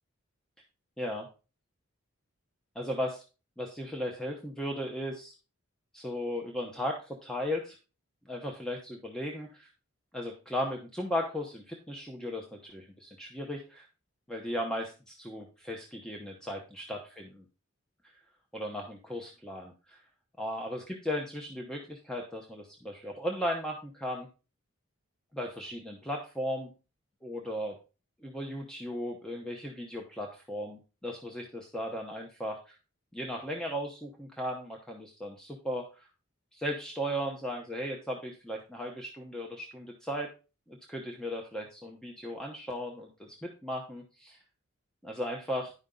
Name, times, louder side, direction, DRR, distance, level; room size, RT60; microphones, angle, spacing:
voice 1, 1.0-1.3 2.7-3.2 3.6-5.3 5.9-7.8 8.3-9.7 10.1-13.9 14.3-17.4 18.5-20.0 20.4-24.3 25.3-26.7 27.2-27.8 28.2-32.7 33.1-36.1 36.5-40.3 40.7-44.4 45.0-45.7, equal, 5° left, 0 dB, 0.8 m, -36 dB
10.5 x 5.3 x 3.8 m, 0.32 s
head